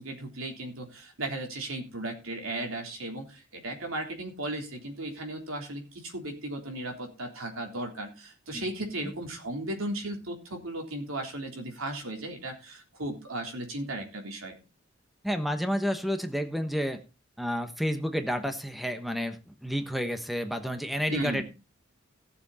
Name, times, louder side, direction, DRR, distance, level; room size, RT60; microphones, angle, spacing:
voice 1, 0.0-14.6 21.1-21.4, right 1 dB, 90° right, 3 dB, 3.6 m, -36 dB
voice 2, 15.2-17.0 17.4-21.4, equal, ahead, 7 dB, 1.1 m, -30 dB
17.5 x 7.1 x 4.2 m, 0.30 s
head